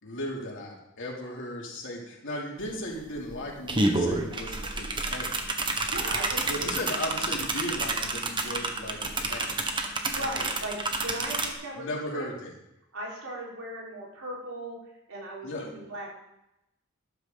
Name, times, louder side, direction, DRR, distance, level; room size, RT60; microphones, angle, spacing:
voice 1, 0.0-5.5 6.4-10.3 11.8-12.5 15.4-15.7, left 1 dB, 60° left, -2 dB, 3.0 m, -36 dB
sound 1, 2.6-2.7 3.0-11.5, right 2 dB, 20° right, 1.3 m, -30 dB
voice 2, 5.8-6.7 9.9-12.3 12.9-14.8 15.1-16.1, right 1 dB, 80° right, -4 dB, 4.7 m, -38 dB
13.0 x 12.0 x 4.0 m, 0.88 s
head